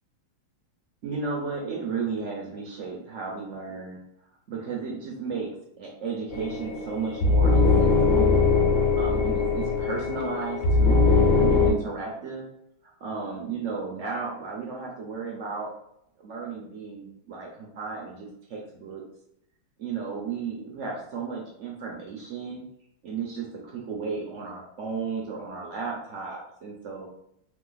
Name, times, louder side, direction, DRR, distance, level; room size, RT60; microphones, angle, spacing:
voice 1, 1.0-4.0 4.5-8.4 9.0-12.5 13.0-15.7 16.2-19.0 19.8-22.6 23.0-27.1, right 5 dB, 85° right, -1 dB, 0.6 m, -34 dB
sound 1, 6.3-11.7, left 4 dB, 60° left, 1.4 m, -21 dB
3.6 x 3.1 x 3.9 m, 0.76 s
omnidirectional pair, 2.2 m